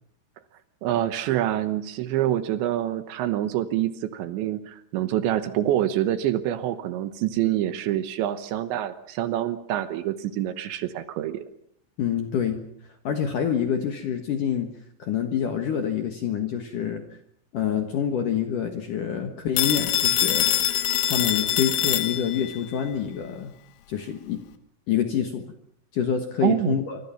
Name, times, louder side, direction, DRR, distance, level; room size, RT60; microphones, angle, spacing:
voice 1, 0.8-11.4 26.4-26.8, right 12 dB, 75° right, 11 dB, 3.2 m, -26 dB
voice 2, 12.0-12.6 13.0-14.7 15.0-17.1 17.5-20.5 21.1-23.5 23.9-24.4 24.9-25.5 25.9-27.0, left 8 dB, 60° left, 6 dB, 2.3 m, -26 dB
Telephone, 19.6-22.6, left 13 dB, 80° left, 4.1 m, -24 dB
25.0 x 24.5 x 5.8 m, 0.68 s
omnidirectional pair, 5.6 m